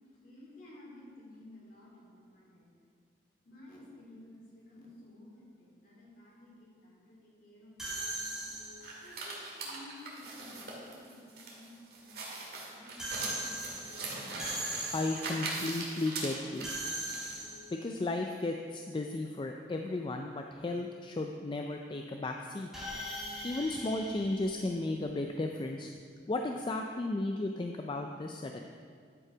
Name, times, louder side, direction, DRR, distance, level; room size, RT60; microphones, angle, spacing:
voice 1, 0.2-2.7 3.4-8.0 9.0-13.0, left 1 dB, 50° left, -4 dB, 2.6 m, -54 dB
sound 1, 7.8-9.1 13.0-15.5 16.6-17.9 22.7-25.3, right 1 dB, ahead, 2.5 m, -40 dB
sound 2, 8.8-17.4, right 3 dB, 60° right, 1.9 m, -41 dB
voice 2, 14.9-16.7 17.7-22.7 23.4-25.9 26.3-28.7, left 2 dB, 25° left, 3 dB, 0.3 m, -34 dB
11.0 x 5.5 x 5.0 m, 2.1 s
head